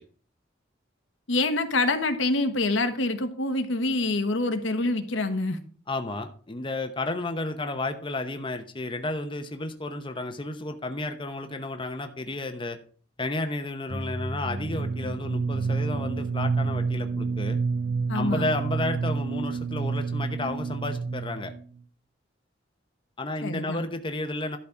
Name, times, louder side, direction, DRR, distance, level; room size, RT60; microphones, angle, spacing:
voice 1, 1.3-5.6 18.1-18.5 23.4-23.8, left 2 dB, 75° left, 8 dB, 1.3 m, -26 dB
voice 2, 5.9-12.8 13.2-17.6 18.1-21.5 23.2-24.6, left 2 dB, 25° left, 6 dB, 0.9 m, -32 dB
sound 1, 13.9-21.6, right 4 dB, 80° right, 0.9 m, -29 dB
12.0 x 4.2 x 7.2 m, 0.43 s
head